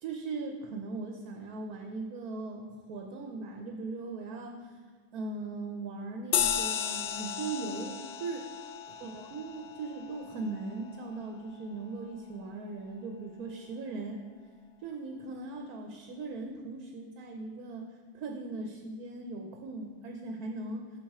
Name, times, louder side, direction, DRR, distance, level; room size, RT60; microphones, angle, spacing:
voice 1, 0.0-4.8 5.1-8.5 9.0-14.2 14.8-17.9 18.1-20.9, right 3 dB, 80° right, 2 dB, 1.2 m, -39 dB
sound 1, 6.3-11.2, left 8 dB, 85° left, 1.1 m, -34 dB
7.2 x 5.9 x 4.8 m, 1.5 s
omnidirectional pair, 1.6 m